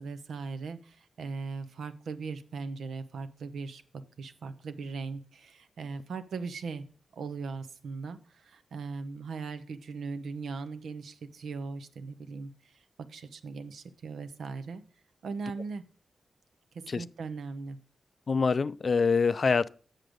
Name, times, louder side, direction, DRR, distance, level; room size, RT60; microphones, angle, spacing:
voice 1, 0.0-6.8 7.1-12.8 13.1-14.8 15.2-15.8 16.9-17.8, right 4 dB, 85° right, 0.6 m, -39 dB
voice 2, 18.3-19.7, left 5 dB, 50° left, 0.3 m, -25 dB
7.7 x 6.5 x 5.0 m
cardioid pair, 70°, 0 cm